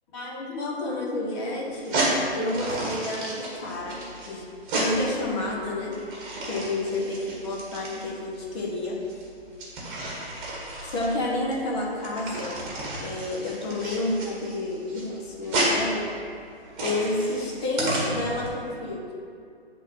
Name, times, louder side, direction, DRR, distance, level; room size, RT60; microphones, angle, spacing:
voice 1, 0.1-2.1 2.3-4.4 4.7-6.0 6.4-9.0 10.8-12.6 13.0-16.1 16.8-19.1, left 2 dB, 25° left, -2 dB, 0.8 m, -30 dB
sound 1, 1.7-18.5, right 1 dB, 25° right, 1.6 m, -32 dB
7.2 x 3.6 x 5.8 m, 2.4 s
hypercardioid pair, 145°, 32 cm